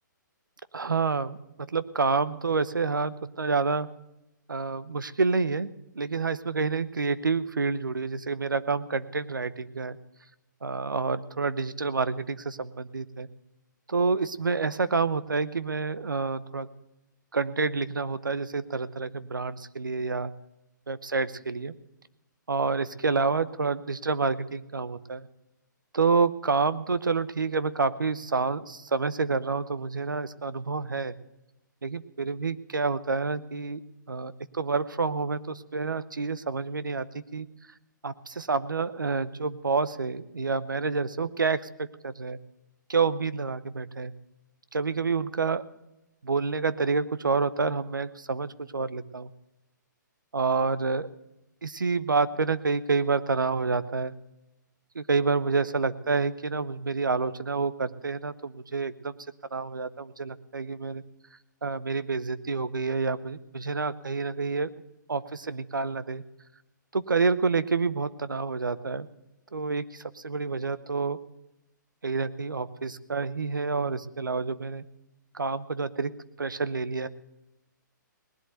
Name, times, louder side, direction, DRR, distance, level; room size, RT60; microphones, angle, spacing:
voice 1, 0.7-3.9 4.5-10.0 10.6-13.3 13.9-16.7 17.3-20.3 20.9-21.7 22.5-25.3 25.9-31.1 31.8-33.8 34.1-37.5 38.0-42.4 42.9-44.1 44.7-45.6 46.2-49.3 50.3-51.1 51.6-54.2 54.9-59.2 59.5-61.0 61.6-64.7 65.1-66.2 66.9-69.1 69.5-71.2 72.0-74.8 75.3-76.1 76.4-77.1, right 4 dB, 85° right, 15 dB, 0.9 m, -28 dB
19.0 x 7.9 x 9.0 m, 0.92 s
figure-of-eight pair, 130°, 11 cm